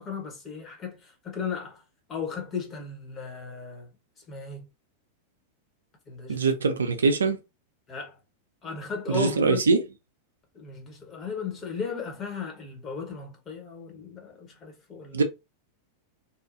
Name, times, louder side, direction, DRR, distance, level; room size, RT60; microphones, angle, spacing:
voice 1, 0.0-1.8 2.1-3.9 4.3-4.7 6.1-6.4 7.9-8.1 8.6-9.6 10.5-15.2, left 5 dB, 25° left, 1.1 m, -36 dB
voice 2, 6.3-7.4 9.1-9.8 15.1-15.2, right 4 dB, 70° right, 0.4 m, -23 dB
2.8 x 2.4 x 2.5 m
figure-of-eight pair, 90°, 0 cm